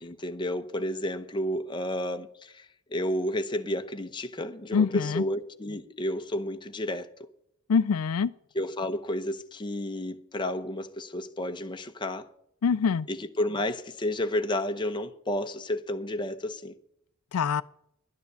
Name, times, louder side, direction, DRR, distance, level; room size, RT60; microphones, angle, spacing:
voice 1, 0.0-7.1 8.5-12.3 13.1-16.8, left 1 dB, 20° left, 0.8 m, -31 dB
voice 2, 4.7-5.2 7.7-8.3 12.6-13.1 17.3-17.6, left 6 dB, 80° left, 0.4 m, -24 dB
11.0 x 9.6 x 6.8 m
head